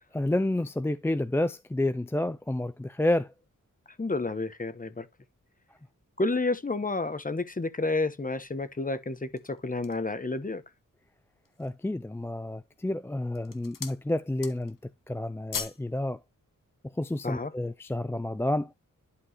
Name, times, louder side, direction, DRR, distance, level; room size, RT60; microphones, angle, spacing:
voice 1, 0.1-3.3 11.6-14.8 15.1-16.2 17.0-18.7, left 1 dB, 10° left, 0.4 m, -29 dB
voice 2, 4.0-5.1 6.2-10.6 17.2-17.5, left 3 dB, 25° left, 1.0 m, -30 dB
sound 1, 9.1-10.1 10.7-10.8 11.3-11.9 12.6-12.9 13.3-14.0 14.3-14.8 15.1-15.9 16.2-16.3, left 6 dB, 80° left, 1.2 m, -39 dB
11.5 x 4.6 x 3.0 m
cardioid pair, 60°, 32 cm